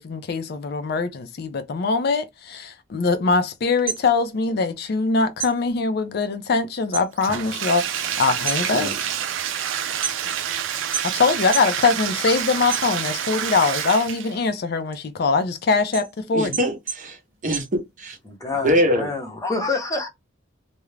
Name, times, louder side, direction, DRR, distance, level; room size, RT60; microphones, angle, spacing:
voice 1, 0.0-8.9 11.0-16.6, left 4 dB, 55° left, 0.4 m, -22 dB
sound 1, 3.7-5.1 5.4-7.1 7.5-7.9 8.3-10.5 10.9-11.8 12.2-13.4 13.8-18.3, right 7 dB, 10° right, 1.0 m, -32 dB
Bathtub (filling or washing), 7.2-14.4, right 9 dB, 75° right, 0.4 m, -27 dB
voice 2, 16.3-17.2 17.4-18.2 18.6-19.1, equal, 40° right, 0.7 m, -23 dB
voice 3, 18.2-20.1, left 3 dB, 15° left, 0.7 m, -27 dB
2.4 x 2.0 x 3.1 m
head